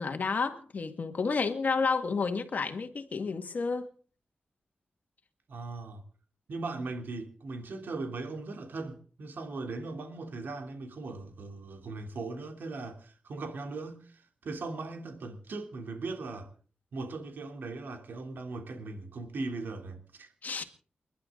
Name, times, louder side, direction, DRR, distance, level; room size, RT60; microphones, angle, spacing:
voice 1, 0.0-3.9 20.4-20.6, left 4 dB, 55° left, 2.0 m, -30 dB
voice 2, 5.5-6.0 6.5-16.5 16.9-20.3, right 3 dB, 85° right, 3.2 m, -39 dB
29.0 x 11.5 x 3.9 m
wide cardioid pair, 130°, 3 cm